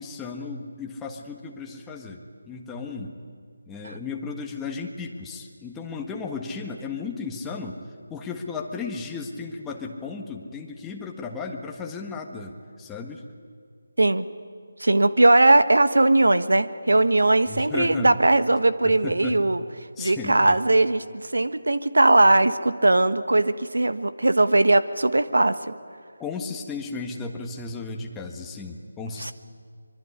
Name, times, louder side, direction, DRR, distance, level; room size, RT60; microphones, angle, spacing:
voice 1, 0.0-3.1 3.7-7.8 8.1-13.2 17.5-18.2 18.8-19.4 20.0-20.6 26.2-29.3, left 4 dB, 10° left, 1 dB, 1.6 m, -35 dB
voice 2, 14.8-19.6 20.0-25.7 29.2-29.3, right 2 dB, 75° right, 13 dB, 1.4 m, -19 dB
25.0 x 23.0 x 9.8 m, 2.2 s
figure-of-eight pair, 160°, 0 cm